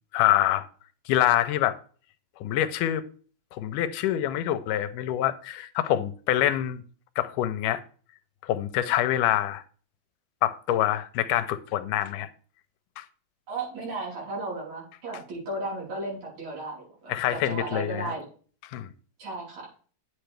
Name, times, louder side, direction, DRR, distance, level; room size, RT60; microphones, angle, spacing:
voice 1, 0.1-0.7 1.1-1.7 2.4-3.0 3.5-6.8 7.2-7.8 8.4-9.6 10.4-12.3 13.0-13.1 17.1-18.2 18.7-18.9, left 12 dB, 90° left, 2.2 m, -25 dB
voice 2, 13.5-18.2 19.2-19.6, right 2 dB, 60° right, 5.6 m, -35 dB
9.0 x 8.1 x 3.4 m
omnidirectional pair, 3.6 m